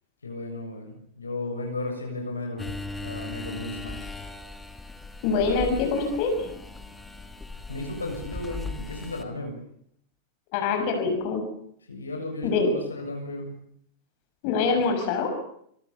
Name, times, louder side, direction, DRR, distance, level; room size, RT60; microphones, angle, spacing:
voice 1, 0.2-2.7 3.0-4.0 7.7-9.6 11.9-13.5, left 2 dB, 75° left, 3 dB, 7.1 m, -34 dB
sound 1, 2.6-9.2, left 2 dB, 10° left, 2.8 m, -38 dB
voice 2, 5.2-6.6 10.5-11.4 12.4-12.7 14.4-15.3, left 4 dB, 45° left, 5 dB, 6.3 m, -24 dB
27.0 x 23.5 x 7.0 m, 0.69 s
figure-of-eight pair, 90°, 0 cm